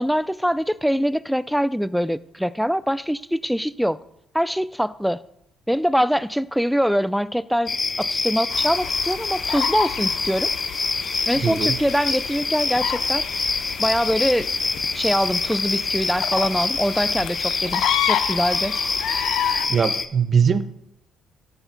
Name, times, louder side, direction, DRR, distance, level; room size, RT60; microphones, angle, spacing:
voice 1, 0.0-4.0 4.3-5.2 5.7-10.5 11.3-13.2 13.8-14.5 14.9-18.8, equal, ahead, 0.4 m, -23 dB
sound 1, 7.7-20.1, left 4 dB, 30° left, 0.8 m, -26 dB
sound 2, 8.5-19.7, left 10 dB, 75° left, 0.6 m, -30 dB
voice 2, 11.4-11.8 19.7-20.6, right 6 dB, 45° right, 0.7 m, -20 dB
13.0 x 8.1 x 4.0 m
cardioid pair, 85°, 0 cm